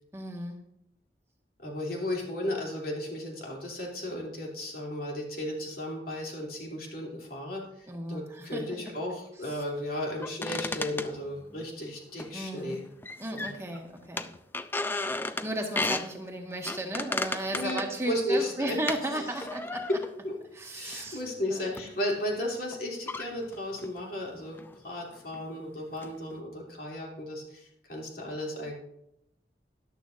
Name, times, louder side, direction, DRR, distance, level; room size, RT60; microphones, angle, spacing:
voice 1, 0.1-0.6 7.9-8.6 9.4-9.6 12.3-12.8 13.2-14.3 15.4-19.9 20.5-21.2 21.5-21.9, right 1 dB, 15° right, 1 dB, 1.6 m, -35 dB
voice 2, 1.6-12.8 13.3-13.5 17.5-18.8 19.1-19.2 19.9-20.0 20.2-20.3 20.7-24.6 24.8-28.8, left 1 dB, 55° left, -1 dB, 3.0 m, -34 dB
sound 1, 10.2-11.7 12.2-12.8 13.0-13.8 14.2-16.1 16.7-19.0 19.4-20.2 20.9-21.1 21.8-21.9 22.7-22.8 23.1-24.0 24.6-24.8 25.1-25.6 25.9-26.4, left 2 dB, 10° left, 0.3 m, -34 dB
13.0 x 11.0 x 2.6 m, 0.80 s
head